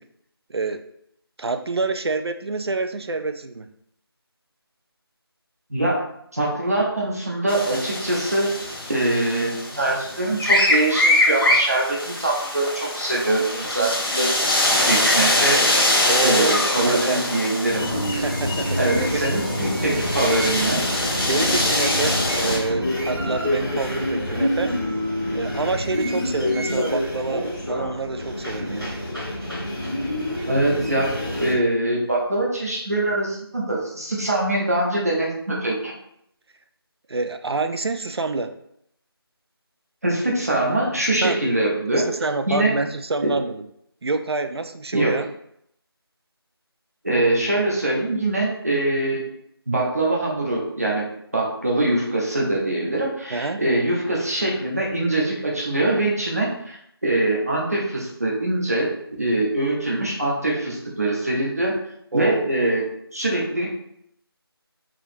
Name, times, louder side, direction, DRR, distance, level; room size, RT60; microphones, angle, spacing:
voice 1, 0.5-0.8 1.4-3.7 16.0-17.2 18.1-19.1 21.2-24.7 25.3-28.9 37.1-38.5 41.2-41.4 41.9-43.6 44.0-45.3 53.3-53.6 62.1-62.5, right 3 dB, 75° right, 8 dB, 0.4 m, -27 dB
voice 2, 6.3-8.5 8.9-14.3 14.8-15.6 16.2-17.8 18.8-20.8 30.5-31.1 31.4-35.9 40.0-42.0 42.5-42.7 43.2-43.3 44.9-45.2 47.0-49.2 49.7-51.1 51.3-58.9 59.2-61.8 62.1-62.8 63.1-63.7, right 1 dB, 40° right, -3 dB, 0.8 m, -23 dB
sound 1, 7.5-22.6, left 1 dB, 65° left, 1.1 m, -23 dB
sound 2, 17.6-31.5, left 1 dB, 5° right, 0.8 m, -27 dB
4.0 x 2.9 x 2.7 m, 0.73 s
figure-of-eight pair, 180°, 13 cm